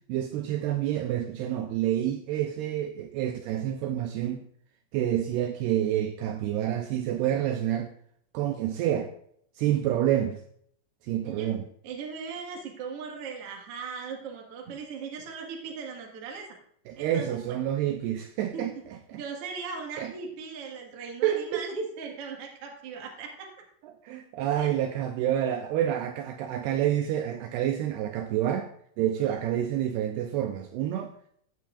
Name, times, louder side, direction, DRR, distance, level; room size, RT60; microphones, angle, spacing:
voice 1, 0.1-4.4 4.9-7.9 8.3-9.1 9.6-10.4 11.0-11.7 16.9-18.7 19.1-19.2 20.0-20.1 21.2-21.7 24.0-28.7 29.0-31.1, right 11 dB, 90° right, 5 dB, 2.3 m, -28 dB
voice 2, 11.8-16.5 17.0-17.6 18.5-18.7 19.2-23.5 24.5-24.7 29.2-29.4, right 5 dB, 60° right, 1 dB, 1.5 m, -38 dB
15.5 x 7.7 x 2.5 m, 0.64 s
omnidirectional pair, 5.3 m